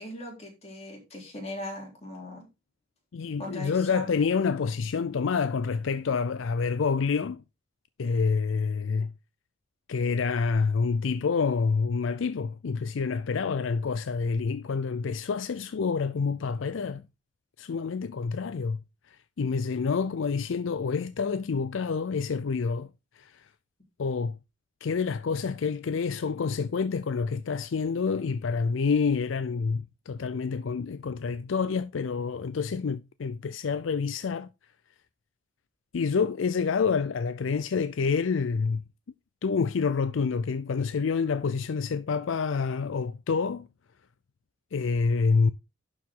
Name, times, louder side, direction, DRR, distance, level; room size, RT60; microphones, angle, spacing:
voice 1, 0.0-2.5 3.4-4.1, left 1 dB, 30° left, 3.3 m, -39 dB
voice 2, 3.1-7.4 8.0-9.1 9.9-17.1 17.6-18.8 19.1-22.9 23.2-23.5 24.0-24.4 24.8-34.5 35.9-38.8 39.4-43.7 44.7-45.5, left 5 dB, 70° left, 0.4 m, -28 dB
11.5 x 4.8 x 3.7 m
head